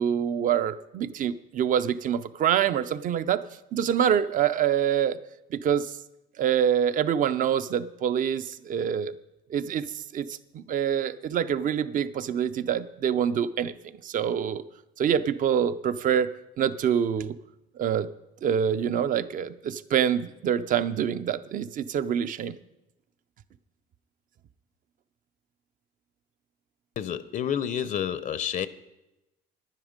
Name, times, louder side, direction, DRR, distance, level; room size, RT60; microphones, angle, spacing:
voice 1, 0.0-3.4 3.7-5.2 5.5-5.9 6.4-9.1 9.5-13.7 14.0-14.6 15.0-16.3 16.6-17.4 17.8-18.1 18.4-22.6, right 9 dB, 50° right, 13 dB, 0.6 m, -26 dB
voice 2, 27.0-28.7, left 9 dB, 50° left, 16 dB, 0.6 m, -29 dB
10.5 x 10.0 x 5.1 m, 0.94 s
cardioid pair, 110°, 17 cm